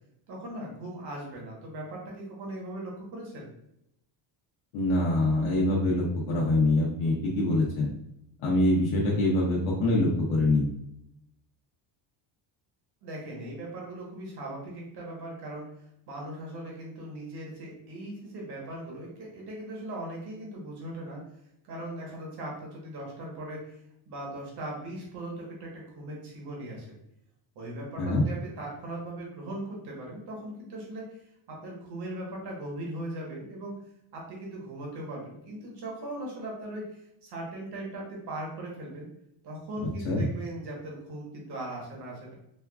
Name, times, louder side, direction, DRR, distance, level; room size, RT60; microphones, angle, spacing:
voice 1, 0.3-3.5 13.0-15.6 16.1-21.2 21.7-23.8 24.1-26.9 27.5-31.2 31.5-33.7 34.1-36.9 37.2-39.1 39.4-42.3, right 1 dB, 55° right, -2 dB, 1.2 m, -39 dB
voice 2, 4.7-7.9 8.4-10.7 28.0-28.2 40.0-40.2, left 2 dB, 80° left, -4 dB, 0.8 m, -24 dB
4.4 x 2.3 x 2.3 m, 0.78 s
cardioid pair, 135°, 47 cm